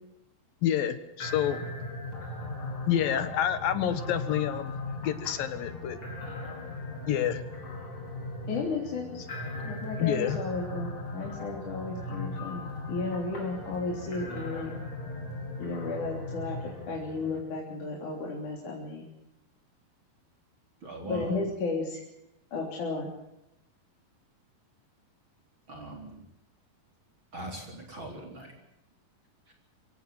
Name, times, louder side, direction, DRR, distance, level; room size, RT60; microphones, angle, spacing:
voice 1, 0.6-1.6 2.9-4.8 5.0-6.0 7.1-7.4 10.0-10.4, left 10 dB, 75° left, 12 dB, 3.2 m, -28 dB
sound 1, 1.2-17.4, left 2 dB, 35° left, 5.8 m, -38 dB
voice 2, 8.5-9.2 9.6-14.7 15.6-16.6 16.9-19.1 21.0-22.0 22.5-23.1, left 3 dB, 55° left, -1 dB, 4.9 m, -33 dB
voice 3, 20.8-21.4 25.7-26.2 27.3-28.5 29.5-29.6, right 2 dB, 35° right, 2 dB, 4.3 m, -41 dB
23.5 x 17.5 x 7.9 m, 0.85 s
omnidirectional pair, 4.2 m